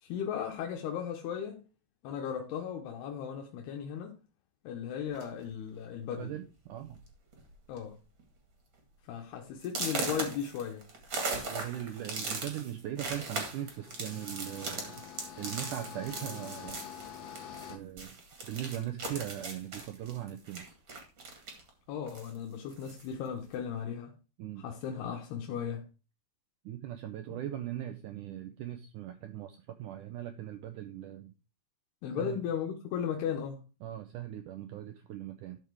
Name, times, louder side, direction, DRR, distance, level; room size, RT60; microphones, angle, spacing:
voice 1, 0.0-1.7 2.0-4.2 4.6-6.3 7.7-8.0 9.1-10.8 21.9-24.1 24.6-25.8 27.3-27.4 32.0-33.6, left 8 dB, 80° left, 3.0 m, -36 dB
sound 1, 5.1-5.5 6.3-6.4 6.8-7.0 7.3-7.8 8.2-8.3 8.8-8.9 9.6-17.7 18.0-21.7 22.1-23.1, right 3 dB, 35° right, 2.4 m, -39 dB
voice 2, 6.2-7.0 11.5-15.0 15.4-16.9 17.7-18.2 18.4-20.7 24.4-24.7 26.6-31.3 32.2-32.4 33.8-35.6, right 12 dB, 85° right, 1.8 m, -40 dB
sound 2, 13.1-17.8, left 9 dB, 55° left, 1.9 m, -47 dB
12.5 x 5.1 x 4.6 m
omnidirectional pair, 4.6 m